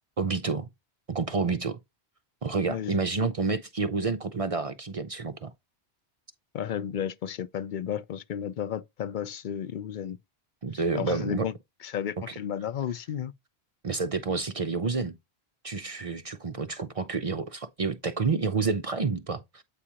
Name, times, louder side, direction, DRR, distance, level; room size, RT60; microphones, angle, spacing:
voice 1, 0.2-0.7 1.1-1.8 2.4-5.5 10.6-11.5 13.8-15.1 15.6-19.6, right 4 dB, 45° right, 0.5 m, -29 dB
voice 2, 6.5-10.2 10.9-11.5 11.8-13.3, left 9 dB, 60° left, 0.6 m, -33 dB
8.5 x 4.9 x 2.8 m
omnidirectional pair, 1.1 m